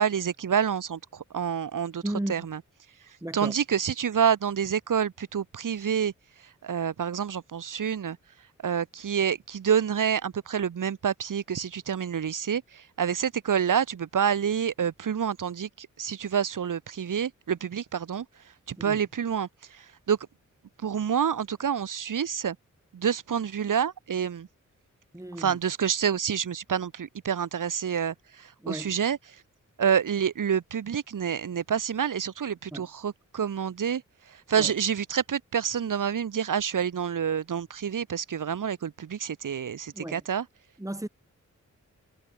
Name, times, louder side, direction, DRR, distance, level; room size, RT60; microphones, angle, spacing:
voice 1, 0.0-2.0 2.3-2.6 3.3-6.1 6.6-8.2 8.6-18.3 18.7-20.2 20.8-22.6 22.9-24.5 25.4-29.2 29.8-34.0 34.3-40.4, right 8 dB, 85° right, 2.3 m, -28 dB
voice 2, 2.0-2.5 3.2-3.5 18.8-19.0 25.1-25.6 28.6-29.0 32.7-32.9 34.6-34.7 39.9-40.2 40.8-41.1, right 1 dB, 10° right, 2.6 m, -34 dB
cardioid pair, 75°, 31 cm